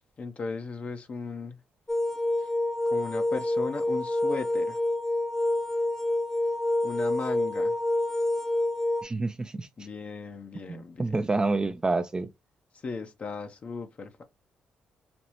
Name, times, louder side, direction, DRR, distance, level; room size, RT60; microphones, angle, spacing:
voice 1, 0.2-1.6 2.4-2.5 2.9-4.8 6.8-7.8 9.8-11.1 12.8-14.2, left 4 dB, 45° left, 0.7 m, -36 dB
sound 1, 1.9-9.0, left 1 dB, 15° left, 0.9 m, -27 dB
voice 2, 9.0-9.7 10.7-12.3, right 3 dB, 25° right, 0.4 m, -28 dB
5.1 x 2.0 x 2.9 m
supercardioid pair, 70°, 3 cm